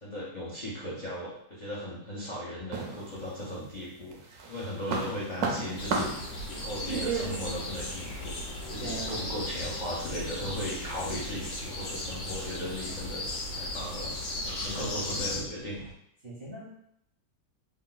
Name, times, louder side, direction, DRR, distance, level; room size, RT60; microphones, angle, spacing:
voice 1, 0.0-6.1 6.5-8.4 8.7-15.9, equal, 85° left, -8 dB, 0.4 m, -37 dB
sound 1, 2.7-3.7 4.1-9.2, right 4 dB, 70° right, 0.9 m, -34 dB
sound 2, 5.7-15.4, left 1 dB, 60° left, 1.1 m, -36 dB
sound 3, 10.9-15.9, right 2 dB, 90° right, 1.5 m, -50 dB
voice 2, 14.7-15.2 16.2-16.7, equal, 45° right, -7 dB, 0.6 m, -43 dB
3.4 x 2.2 x 3.9 m, 0.74 s
omnidirectional pair, 2.1 m